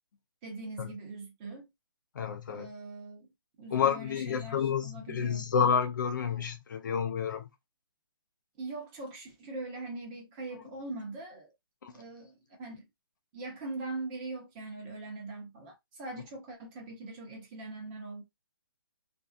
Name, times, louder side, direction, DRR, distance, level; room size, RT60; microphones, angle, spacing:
voice 1, 0.4-1.7 2.5-3.3 3.6-5.5 8.6-11.5 11.9-12.9 13.3-18.2, right 2 dB, 20° right, 1.0 m, -42 dB
voice 2, 2.2-2.7 3.7-7.5 11.8-11.9, left 7 dB, 50° left, 0.5 m, -29 dB
2.6 x 2.3 x 2.4 m
hypercardioid pair, 160°, 13 cm